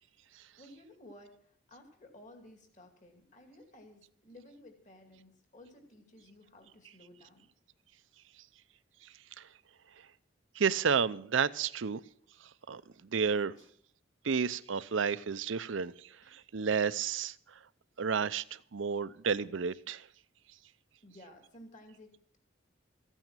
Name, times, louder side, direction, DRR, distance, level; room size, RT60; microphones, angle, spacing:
voice 1, 0.6-7.4 13.6-13.7 16.2-16.4 21.0-22.4, left 1 dB, 40° left, 2.4 m, -55 dB
voice 2, 10.6-12.0 12.7-13.5 14.2-17.6 18.0-20.1, right 6 dB, 65° right, 0.6 m, -31 dB
15.0 x 9.1 x 7.3 m
head